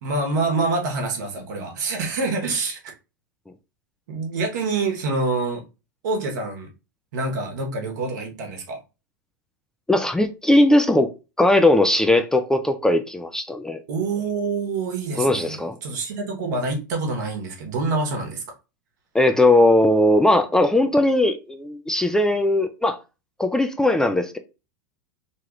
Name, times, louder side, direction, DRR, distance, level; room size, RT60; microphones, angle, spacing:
voice 1, 0.0-2.9 4.1-5.6 6.0-6.7 7.1-8.8 13.9-18.4, right 3 dB, 65° right, 1.1 m, -26 dB
voice 2, 9.9-11.1 11.4-13.8 15.2-15.8 19.1-23.0 23.4-24.4, left 1 dB, 5° left, 0.4 m, -19 dB
3.0 x 2.3 x 3.0 m
hypercardioid pair, 95°, 10 cm